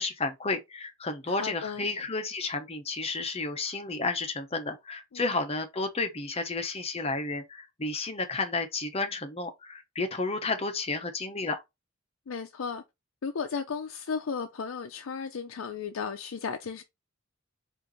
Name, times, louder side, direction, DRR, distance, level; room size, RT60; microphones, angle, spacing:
voice 1, 0.0-11.6, left 3 dB, 30° left, 0.8 m, -32 dB
voice 2, 1.3-1.9 5.1-5.2 12.3-12.8 13.2-16.8, left 5 dB, 85° left, 0.5 m, -34 dB
4.4 x 2.6 x 3.9 m
head